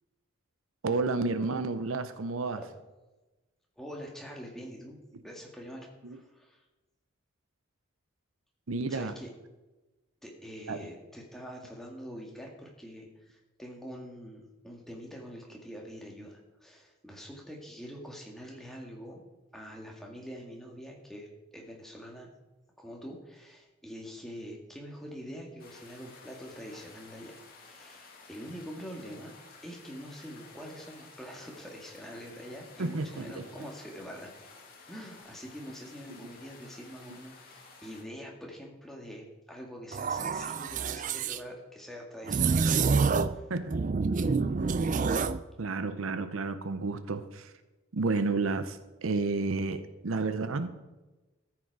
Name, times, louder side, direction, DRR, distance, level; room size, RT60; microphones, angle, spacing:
voice 1, 0.8-2.6 6.0-6.2 8.7-9.2 10.7-10.8 32.8-33.7 43.5-43.8 45.6-47.5 47.9-50.7, right 3 dB, 80° right, 11 dB, 0.7 m, -31 dB
voice 2, 3.8-5.0 5.2-6.6 8.9-9.3 10.2-19.2 19.5-22.3 22.8-29.3 29.6-34.3 34.9-42.9 43.3-43.5, equal, ahead, -1 dB, 1.8 m, -45 dB
sound 1, 25.6-38.0, left 4 dB, 45° left, 2.1 m, -53 dB
sound 2, 39.9-41.4 42.3-43.4 43.7-45.4, right 4 dB, 40° right, 0.4 m, -27 dB
13.5 x 7.6 x 4.7 m, 1.1 s
head